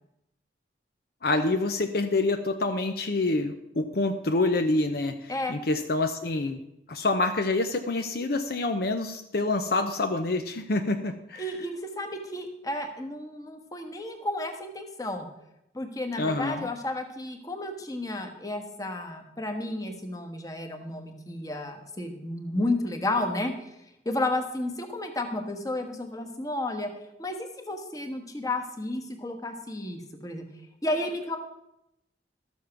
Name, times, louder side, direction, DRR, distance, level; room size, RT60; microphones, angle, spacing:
voice 1, 1.2-6.6 6.9-11.4 16.2-16.7, left 2 dB, 55° left, 6 dB, 0.7 m, -27 dB
voice 2, 11.4-15.3 15.7-23.7 24.0-26.9 27.2-30.4 30.8-31.4, left 1 dB, 20° left, 5 dB, 1.3 m, -32 dB
13.0 x 7.2 x 5.9 m, 0.84 s
head